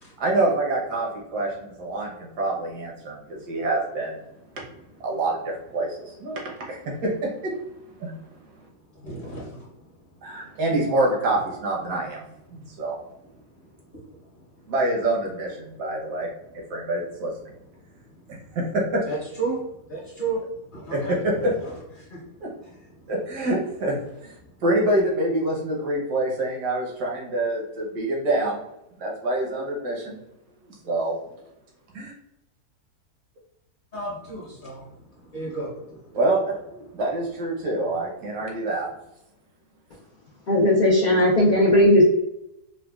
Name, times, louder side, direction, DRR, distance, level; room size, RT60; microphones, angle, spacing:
voice 1, 0.2-4.2 5.0-8.6 10.2-12.2 12.5-13.0 14.7-16.3 16.5-17.5 18.3-19.0 20.9-21.5 22.4-22.5 23.1-23.9 24.2-28.6 29.0-30.2 30.7-31.3 31.9-32.1 36.1-38.9, right 2 dB, 80° right, -2 dB, 1.5 m, -26 dB
voice 2, 8.9-9.7 13.6-14.5 18.1-18.2 19.1-21.1 22.0-22.4 23.0-23.1 33.9-34.9 35.2-36.2, right 3 dB, 40° left, -5 dB, 0.8 m, -34 dB
voice 3, 40.5-42.0, left 1 dB, 85° left, -5 dB, 0.4 m, -17 dB
4.9 x 2.2 x 2.3 m, 0.84 s
omnidirectional pair, 1.7 m